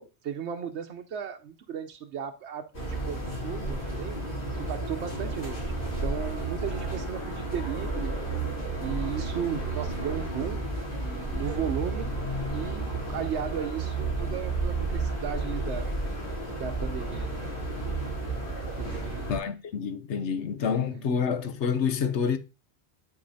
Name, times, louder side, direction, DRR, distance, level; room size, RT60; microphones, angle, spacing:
voice 1, 0.0-4.2 4.5-5.7 6.0-8.2 8.8-10.7 11.0-12.1 12.5-15.9 16.6-17.4 18.7-19.3 20.6-21.0, right 8 dB, 85° right, 1.0 m, -35 dB
sound 1, 2.7-19.4, right 2 dB, 50° left, 3.4 m, -32 dB
voice 2, 19.3-22.4, left 6 dB, 85° left, 1.1 m, -28 dB
11.5 x 4.5 x 2.7 m
omnidirectional pair, 1.1 m